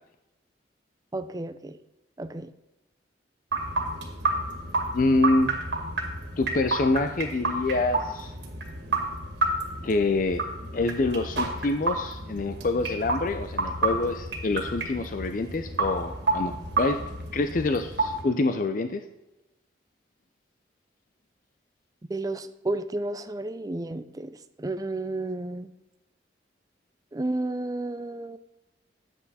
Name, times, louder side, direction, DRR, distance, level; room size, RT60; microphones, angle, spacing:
voice 1, 1.1-1.8 2.2-2.5 22.1-25.7 27.1-28.4, right 2 dB, 20° right, 11 dB, 0.4 m, -32 dB
sound 1, 3.5-18.2, right 2 dB, 75° right, 2.3 m, -30 dB
voice 2, 4.9-5.5 6.4-8.3 9.8-10.4 10.7-19.0, left 2 dB, 45° left, 8 dB, 0.5 m, -26 dB
10.0 x 8.2 x 4.1 m, 1.0 s
head